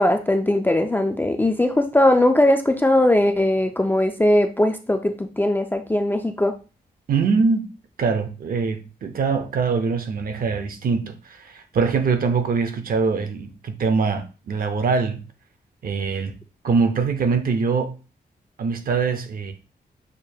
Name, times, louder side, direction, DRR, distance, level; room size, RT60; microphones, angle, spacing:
voice 1, 0.0-6.5, left 1 dB, 10° left, 0.3 m, -19 dB
voice 2, 7.1-7.7 8.0-15.2 15.8-16.4 16.6-17.9 18.6-19.5, right 5 dB, 55° right, 0.6 m, -23 dB
6.6 x 2.2 x 2.7 m
wide cardioid pair, 145°, 17 cm